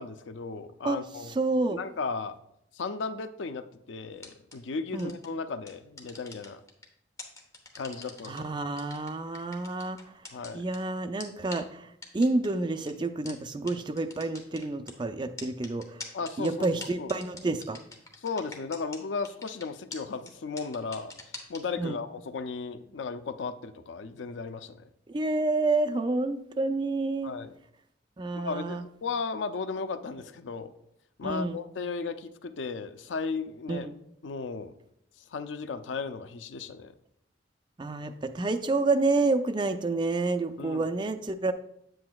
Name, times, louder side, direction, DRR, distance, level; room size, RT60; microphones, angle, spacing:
voice 1, 0.0-1.3 1.7-2.3 2.7-6.6 7.8-8.5 10.3-10.6 16.1-16.7 17.0-17.1 18.2-21.1 21.5-24.8 27.2-27.5 28.3-30.7 31.2-33.9 34.2-34.7 35.3-36.9 40.6-40.9, left 4 dB, 85° left, 10 dB, 0.5 m, -35 dB
voice 2, 1.3-1.8 4.9-5.1 8.3-10.0 10.5-16.0 16.4-17.8 21.8-22.0 25.1-27.3 28.2-28.8 31.2-31.6 33.7-33.9 37.8-41.5, right 3 dB, 25° right, 8 dB, 0.4 m, -29 dB
sound 1, 4.2-4.5 5.0-5.3 5.7-6.8 7.2-8.4 8.8-10.8 11.2-11.3 11.5-11.6 12.0-12.5 12.9-13.0 13.3-13.4 13.7-13.8 14.0-14.9 15.4-19.0 19.2-19.6 19.9-20.0 20.3-20.4 20.6-21.6, left 3 dB, 15° left, 0.9 m, -42 dB
8.5 x 7.7 x 2.3 m, 0.76 s
head